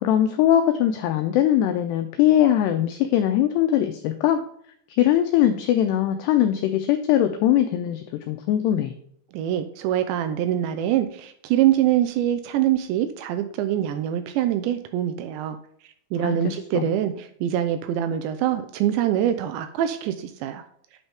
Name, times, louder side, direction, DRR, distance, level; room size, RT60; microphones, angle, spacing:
voice 1, 0.0-4.4 5.0-8.9 16.2-16.4 16.7-16.9, left 11 dB, 90° left, 7 dB, 2.4 m, -21 dB
voice 2, 9.3-15.6 16.1-20.6, right 11 dB, 85° right, 9 dB, 2.6 m, -24 dB
8.8 x 5.5 x 3.5 m, 0.66 s
omnidirectional pair, 5.5 m